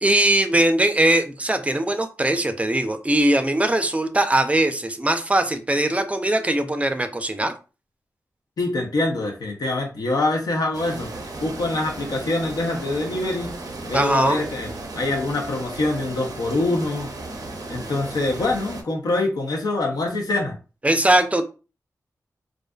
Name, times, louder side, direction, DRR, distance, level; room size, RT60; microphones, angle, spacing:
voice 1, 0.0-7.5 13.9-14.4 20.8-21.4, right 1 dB, 20° right, 8 dB, 0.4 m, -20 dB
voice 2, 8.6-11.1 11.4-13.6 13.8-14.7 14.9-17.1 17.7-20.5, left 2 dB, 80° left, 1 dB, 0.6 m, -24 dB
sound 1, 10.7-18.8, right 2 dB, 75° right, 0.5 m, -35 dB
2.4 x 2.3 x 2.3 m, 0.33 s
cardioid pair, 50°, 7 cm